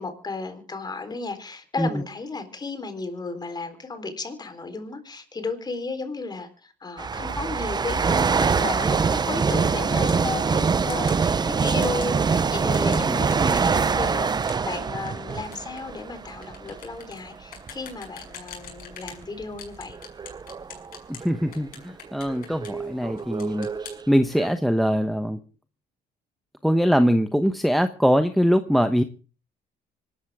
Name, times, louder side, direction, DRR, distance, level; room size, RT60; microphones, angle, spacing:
voice 1, 0.0-20.0, left 3 dB, 25° left, 8 dB, 3.9 m, -34 dB
sound 1, 7.0-16.9 17.6-17.8 18.5-21.6 22.3-24.1 24.4-24.5, right 5 dB, 25° right, 0.7 m, -24 dB
sound 2, 9.9-10.3 10.9-11.2 11.8-12.1 12.7-19.2 19.6-21.3 21.5-22.9 23.2-24.0, left 7 dB, 55° left, 6.2 m, -44 dB
voice 2, 12.8-13.2 21.1-23.7 24.1-25.4 26.6-29.0, equal, ahead, 9 dB, 1.0 m, -22 dB
25.5 x 13.0 x 3.6 m, 0.36 s
cardioid pair, 110°, 17 cm